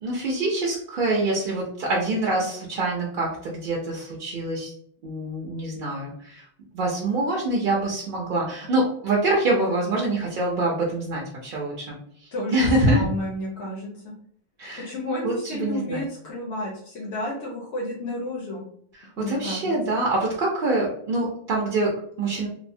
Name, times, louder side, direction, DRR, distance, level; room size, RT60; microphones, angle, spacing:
voice 1, 0.0-4.7 5.0-6.5 6.7-13.1 14.6-14.9 15.2-16.0 19.0-22.5, right 2 dB, 60° right, -3 dB, 0.7 m, -25 dB
voice 2, 12.3-14.1 14.8-18.6 19.2-20.0, left 1 dB, 80° left, -4 dB, 1.0 m, -31 dB
3.1 x 2.0 x 2.5 m, 0.64 s
omnidirectional pair, 1.1 m